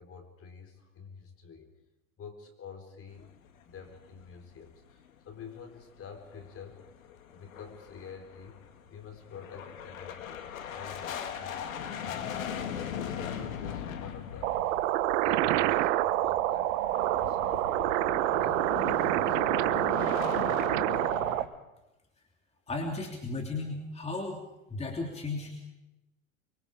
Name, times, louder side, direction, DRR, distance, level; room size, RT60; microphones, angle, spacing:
voice 1, 0.0-1.7 2.2-3.3 3.7-6.9 7.3-8.6 8.9-12.5 12.9-14.9 15.2-20.2, left 6 dB, 35° left, 6 dB, 4.2 m, -48 dB
sound 1, 3.1-4.8 5.1-5.2 5.6-5.7 6.1-21.5, left 8 dB, 80° left, 2.2 m, -40 dB
sound 2, 14.4-21.4, right 15 dB, 65° right, 1.2 m, -27 dB
voice 2, 22.7-24.4 24.7-25.6, left 3 dB, 15° left, 2 dB, 3.1 m, -35 dB
24.5 x 24.0 x 5.0 m, 0.94 s
hypercardioid pair, 95°, 40 cm